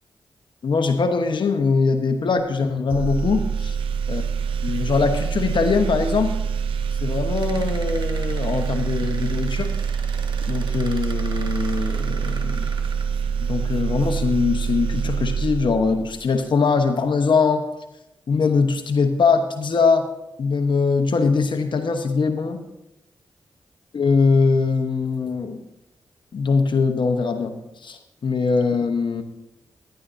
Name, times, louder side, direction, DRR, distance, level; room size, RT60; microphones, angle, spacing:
voice 1, 0.6-3.8 4.1-4.2 4.6-6.3 7.0-9.7 10.5-12.7 13.5-17.6 18.3-20.1 20.4-22.6 23.9-25.6 26.3-27.5 27.8-29.2, left 4 dB, 65° left, 6 dB, 0.9 m, -21 dB
sound 1, 2.9-16.3, right 6 dB, 85° right, 0.5 m, -25 dB
sound 2, 7.4-13.6 14.5-14.6 15.1-15.7 16.2-16.4, right 3 dB, 55° right, 1.6 m, -41 dB
16.5 x 11.5 x 2.6 m, 0.90 s
supercardioid pair, 45°, 9 cm